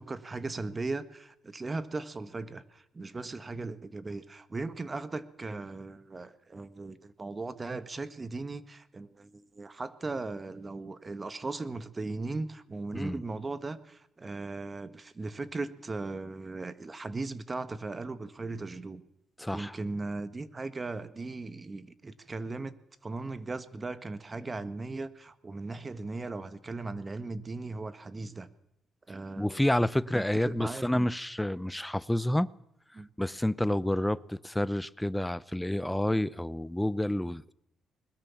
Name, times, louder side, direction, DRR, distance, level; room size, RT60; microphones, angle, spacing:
voice 1, 0.0-19.0 19.5-22.7 23.0-28.5 29.1-29.6 30.1-31.1 32.9-33.1, right 3 dB, 25° right, 1.5 m, -38 dB
voice 2, 19.4-19.7 29.4-32.5 33.2-37.5, left 1 dB, 5° left, 0.7 m, -29 dB
21.0 x 20.5 x 7.1 m
cardioid pair, 90°, 0 cm